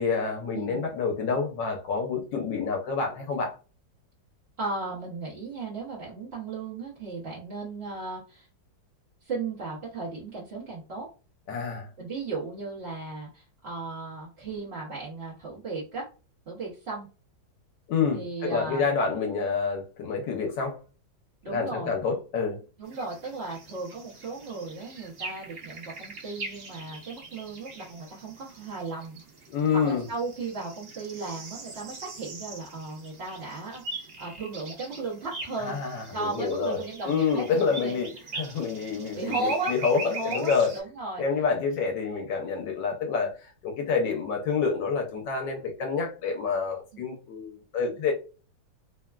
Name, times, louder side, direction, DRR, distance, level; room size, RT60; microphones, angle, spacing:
voice 1, 0.0-3.6 11.5-11.9 17.9-20.8 21.5-22.6 29.5-30.0 35.6-38.1 38.3-40.7 41.2-48.1, left 5 dB, 75° left, 2 dB, 1.3 m, -28 dB
voice 2, 0.5-0.9 4.6-8.5 9.2-11.1 12.0-16.0 16.5-17.1 18.1-18.8 21.4-21.9 22.8-29.2 29.7-35.8 36.1-37.5 37.8-38.1 39.1-39.7 40.0-41.2 46.9-47.0, right 3 dB, 45° right, -7 dB, 0.9 m, -35 dB
sound 1, 22.9-40.8, right 2 dB, 75° right, 0.5 m, -42 dB
3.4 x 2.2 x 2.2 m, 0.34 s
omnidirectional pair, 2.0 m